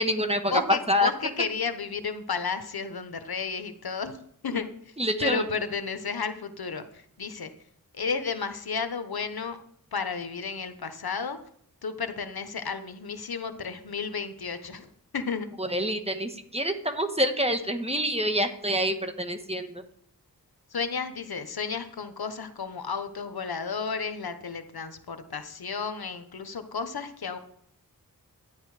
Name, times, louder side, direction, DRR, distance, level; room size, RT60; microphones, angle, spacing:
voice 1, 0.0-1.1 5.0-5.4 15.6-19.8, equal, 15° right, 6 dB, 1.4 m, -26 dB
voice 2, 0.5-4.9 5.2-7.5 7.9-9.6 9.9-11.4 11.8-15.5 20.7-27.4, left 5 dB, 85° left, 9 dB, 1.1 m, -32 dB
12.5 x 10.0 x 4.9 m, 0.66 s
wide cardioid pair, 60°, 36 cm